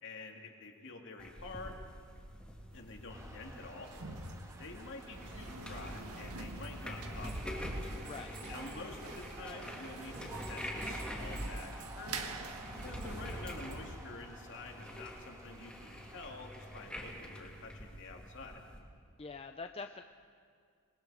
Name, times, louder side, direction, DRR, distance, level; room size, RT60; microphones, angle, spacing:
voice 1, 0.0-1.8 2.7-3.9 4.6-7.7 8.5-12.2 12.7-18.6, left 3 dB, 55° left, 2 dB, 2.6 m, -48 dB
sound 1, 1.2-18.8, equal, 5° left, 2.8 m, -46 dB
sound 2, 2.7-14.0, right 2 dB, 80° right, 1.5 m, -45 dB
sound 3, 3.1-16.9, right 1 dB, 15° right, 1.7 m, -53 dB
voice 2, 8.1-8.4 19.2-20.0, left 4 dB, 25° left, 6 dB, 0.5 m, -44 dB
28.0 x 21.0 x 5.0 m, 2.2 s
head